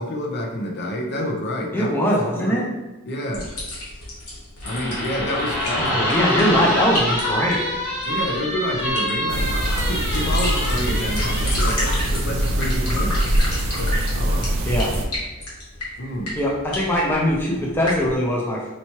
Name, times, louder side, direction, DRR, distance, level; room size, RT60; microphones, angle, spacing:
voice 1, 0.0-1.9 2.4-2.6 3.1-3.4 4.6-6.1 6.6-6.7 8.0-13.2 13.8-14.5 16.0-16.3, left 1 dB, 50° left, 0 dB, 0.7 m, -28 dB
voice 2, 1.7-2.6 5.8-7.7 14.7-14.9 16.4-18.7, equal, 10° left, -3 dB, 0.5 m, -21 dB
sound 1, 3.3-18.1, left 1 dB, 85° left, 1.3 m, -32 dB
sound 2, 4.6-11.7, equal, 65° left, 1.2 m, -26 dB
sound 3, 9.3-15.1, right 1 dB, 65° right, 0.5 m, -23 dB
4.4 x 3.0 x 2.9 m, 1.1 s
head